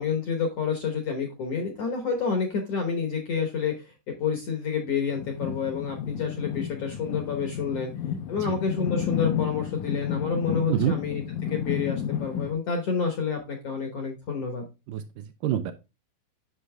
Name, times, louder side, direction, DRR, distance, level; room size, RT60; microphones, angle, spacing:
voice 1, 0.0-7.9 8.3-14.6, left 5 dB, 65° left, 3 dB, 1.6 m, -29 dB
sound 1, 5.1-12.5, left 8 dB, 80° left, 1.7 m, -32 dB
voice 2, 14.9-15.7, right 11 dB, 80° right, 8 dB, 2.0 m, -27 dB
8.4 x 6.3 x 2.2 m, 0.28 s
omnidirectional pair, 4.3 m